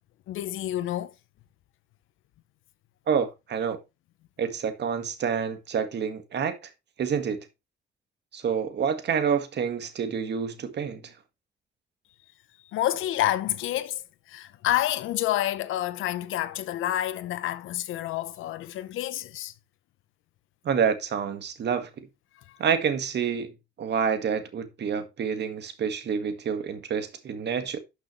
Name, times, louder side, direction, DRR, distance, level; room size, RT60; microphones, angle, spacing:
voice 1, 0.3-1.1 12.7-14.0 14.3-19.5, left 13 dB, 85° left, 0.9 m, -28 dB
voice 2, 3.1-3.8 4.4-6.6 7.0-7.5 8.3-11.1 20.7-21.9 22.6-23.5 23.8-27.8, right 7 dB, 60° right, 1.8 m, -28 dB
12.0 x 6.0 x 3.2 m
cardioid pair, 90°, 20 cm